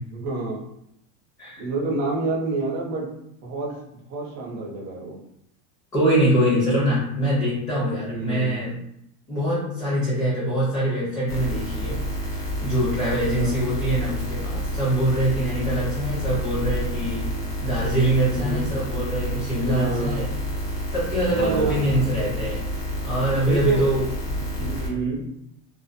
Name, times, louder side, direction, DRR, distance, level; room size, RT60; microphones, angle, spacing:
voice 1, 0.1-0.6 1.6-3.1 3.4-3.7 4.1-5.2 8.0-8.6 13.4-13.5 18.3-18.7 19.7-20.3 21.3-22.1 23.2-23.9 24.3-25.2, right 3 dB, 30° right, -3 dB, 0.6 m, -28 dB
voice 2, 5.9-8.7 9.3-12.0 12.6-17.3 17.6-20.2 20.9-22.6 23.0-24.0, right 1 dB, 15° left, -9 dB, 0.7 m, -23 dB
sound 1, 11.3-24.9, equal, 55° left, 0.7 m, -29 dB
2.5 x 2.3 x 2.5 m, 0.77 s
supercardioid pair, 155°, 46 cm